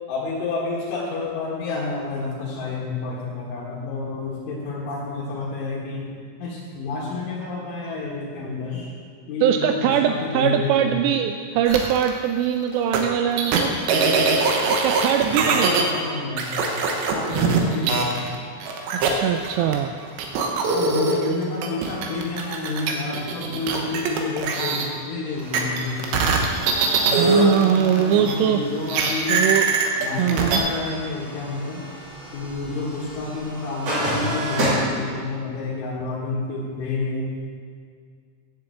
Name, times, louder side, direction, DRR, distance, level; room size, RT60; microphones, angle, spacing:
voice 1, 0.1-6.0 6.4-8.9 9.3-11.0 15.4-16.7 17.1-18.3 20.7-26.3 27.0-29.4 30.0-31.8 32.3-37.3, left 3 dB, 80° left, -6 dB, 4.1 m, -29 dB
voice 2, 9.4-13.7 14.8-15.9 19.1-19.9 27.2-28.6 29.3-29.7 30.2-30.6, right 9 dB, 90° right, 6 dB, 2.4 m, -21 dB
sound 1, 11.7-12.1 12.9-13.0 13.4-15.8 16.4-18.4 18.6-19.7 20.2-24.9 25.5-28.4 28.9-30.6, right 4 dB, 75° right, 3.1 m, -22 dB
sound 2, 25.2-34.7, right 1 dB, 40° right, 3.1 m, -33 dB
11.5 x 7.0 x 7.7 m, 2.1 s
omnidirectional pair, 5.5 m